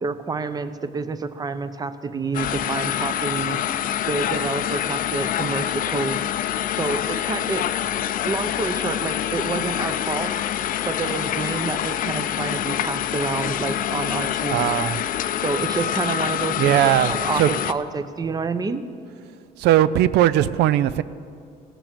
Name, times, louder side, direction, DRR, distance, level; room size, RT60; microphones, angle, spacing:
voice 1, 0.0-3.6 4.1-6.2 6.7-7.7 8.0-10.3 10.9-14.7 15.4-18.9, right 4 dB, 25° right, 12 dB, 0.6 m, -28 dB
sound 1, 2.3-17.7, left 11 dB, 55° left, 0.5 m, -26 dB
voice 2, 14.5-15.0 16.6-17.5 19.6-21.0, right 13 dB, 80° right, 16 dB, 0.4 m, -19 dB
16.5 x 6.0 x 6.8 m, 2.3 s
cardioid pair, 110°, 17 cm